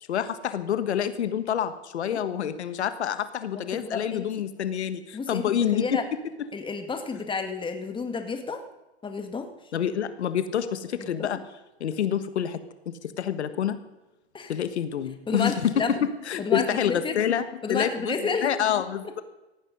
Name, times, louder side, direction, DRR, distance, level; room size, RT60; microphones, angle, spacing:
voice 1, 0.1-6.0 9.7-11.4 11.8-12.6 12.8-13.8 14.5-18.1 18.4-19.2, left 9 dB, 85° left, 11 dB, 1.5 m, -27 dB
voice 2, 3.5-4.4 5.1-6.0 6.5-8.6 9.0-9.5 11.0-11.4 14.3-14.5 15.3-16.0 16.4-17.1 17.6-18.5, left 4 dB, 15° left, 6 dB, 2.1 m, -31 dB
17.5 x 15.0 x 5.4 m, 1.0 s
hypercardioid pair, 115°, 33 cm